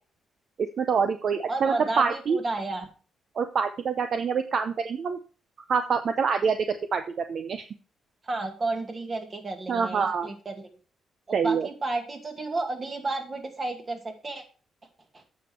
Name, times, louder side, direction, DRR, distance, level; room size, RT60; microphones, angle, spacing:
voice 1, 0.6-2.4 3.4-5.2 5.7-7.0 7.3-7.6 9.7-10.3 11.3-11.7, right 6 dB, 60° right, 8 dB, 0.7 m, -26 dB
voice 2, 1.5-2.9 8.3-10.7 11.4-14.0 14.2-14.4, right 2 dB, 35° right, 4 dB, 2.1 m, -32 dB
8.3 x 6.4 x 4.5 m, 0.36 s
cardioid pair, 75°, 0 cm